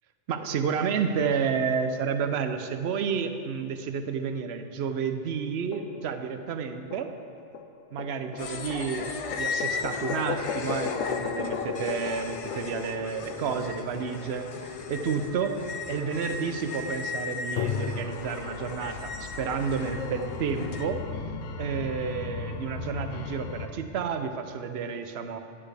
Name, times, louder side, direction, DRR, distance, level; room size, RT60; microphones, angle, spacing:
voice 1, 0.3-7.1 7.9-9.1 9.4-21.0 21.6-25.4, right 6 dB, 65° right, 8 dB, 0.8 m, -30 dB
sound 1, 5.7-6.4 6.9-14.4 17.6-23.7, left 6 dB, 85° left, 0.9 m, -36 dB
sound 2, 8.4-20.8, left 5 dB, 65° left, 0.3 m, -36 dB
10.5 x 9.8 x 3.3 m, 2.5 s
omnidirectional pair, 1.2 m